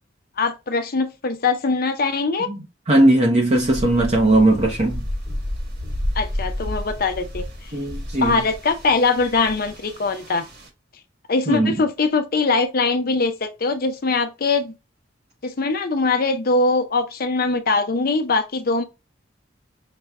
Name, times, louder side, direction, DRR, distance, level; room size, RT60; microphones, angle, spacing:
voice 1, 0.4-2.5 6.2-7.7 8.2-10.4 11.3-14.7 15.4-18.8, left 3 dB, 50° left, 0.7 m, -22 dB
voice 2, 2.5-5.0 7.7-8.4 11.5-11.7, right 1 dB, 35° right, 0.7 m, -18 dB
sound 1, 3.5-10.7, left 1 dB, 60° right, 1.5 m, -31 dB
5.7 x 2.2 x 3.5 m
head